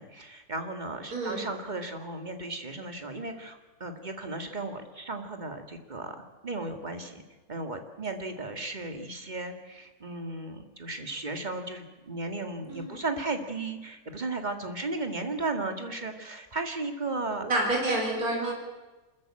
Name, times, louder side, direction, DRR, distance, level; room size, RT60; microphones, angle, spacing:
voice 1, 0.0-6.2 6.4-7.2 7.5-17.5 18.4-18.5, right 2 dB, 25° right, 6 dB, 2.1 m, -35 dB
voice 2, 1.1-1.5 12.7-13.0 17.4-18.5, right 2 dB, 65° right, 0 dB, 4.5 m, -28 dB
25.5 x 14.0 x 8.8 m, 1.2 s
omnidirectional pair, 1.7 m